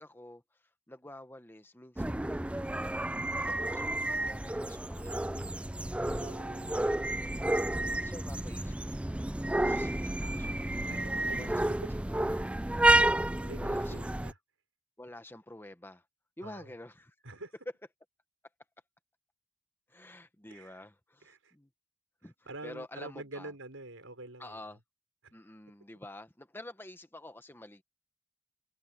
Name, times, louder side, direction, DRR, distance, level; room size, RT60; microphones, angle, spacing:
voice 1, 0.0-6.2 7.8-9.0 9.6-10.6 11.4-11.6 12.3-13.1 13.6-14.2 15.0-16.0 16.4-17.1 19.9-21.7 22.2-22.3 22.6-23.5 24.4-24.8 25.3-27.8, left 1 dB, 10° left, 1.1 m, -50 dB
sound 1, 2.0-14.3, right 1 dB, 5° right, 0.3 m, -30 dB
voice 2, 6.2-7.1 10.2-11.6 13.1-13.2 13.4-14.4 16.4-16.7 17.2-17.5 20.5-20.8 21.2-21.5 22.2-24.8 25.2-25.3, right 2 dB, 85° right, 5.8 m, -47 dB
head